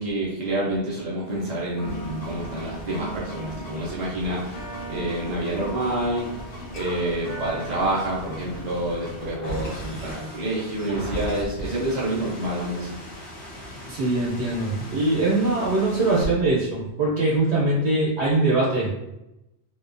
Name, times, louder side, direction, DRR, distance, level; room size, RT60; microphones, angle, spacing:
voice 1, 0.0-6.2 6.7-13.0, right 1 dB, 50° right, -6 dB, 0.6 m, -28 dB
sound 1, 1.2-9.8, right 1 dB, 60° left, 0.9 m, -39 dB
sound 2, 1.8-16.3, equal, 80° left, 1.2 m, -38 dB
voice 2, 13.9-18.9, right 2 dB, 75° right, -5 dB, 1.0 m, -22 dB
2.8 x 2.2 x 2.4 m, 0.89 s
omnidirectional pair, 1.1 m